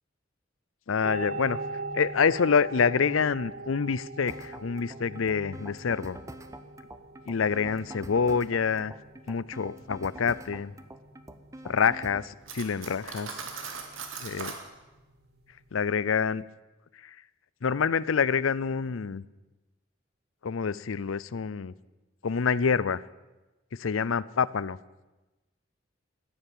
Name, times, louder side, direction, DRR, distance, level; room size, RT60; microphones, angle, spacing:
voice 1, 0.9-1.6 1.9-6.2 7.3-8.9 9.3-10.7 11.6-13.4 14.2-14.5 15.7-16.4 17.0-17.2 17.6-19.2 20.4-21.7 22.2-23.0 23.7-24.8, left 6 dB, 90° left, 20 dB, 0.6 m, -27 dB
sound 1, 1.0-15.8, right 3 dB, 55° right, 2.2 m, -42 dB
sound 2, 4.3-12.3, right 1 dB, 15° right, 1.0 m, -45 dB
Cutlery silverware, 12.5-14.6, right 5 dB, 85° right, 2.3 m, -39 dB
16.0 x 10.0 x 9.1 m, 1.1 s
head